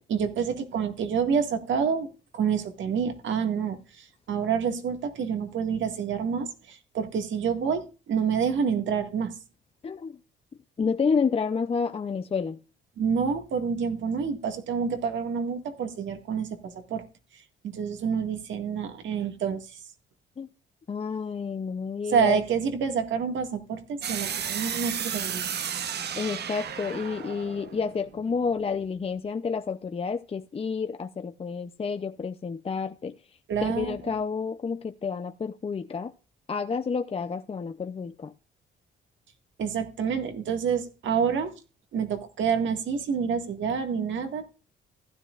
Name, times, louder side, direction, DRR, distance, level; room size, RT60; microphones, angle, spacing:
voice 1, 0.1-2.1 2.3-9.3 13.0-17.0 17.6-19.8 22.1-25.4 33.5-34.1 39.6-41.6 41.9-44.4, right 6 dB, 70° right, 1.9 m, -28 dB
voice 2, 9.8-10.2 10.8-12.6 20.4-20.5 20.9-22.4 26.2-33.2 33.6-36.1 36.5-38.3, left 5 dB, 30° left, 0.6 m, -30 dB
sound 1, 24.0-28.9, right 8 dB, 55° right, 1.0 m, -33 dB
15.0 x 10.5 x 2.5 m
cardioid pair, 90°, 20 cm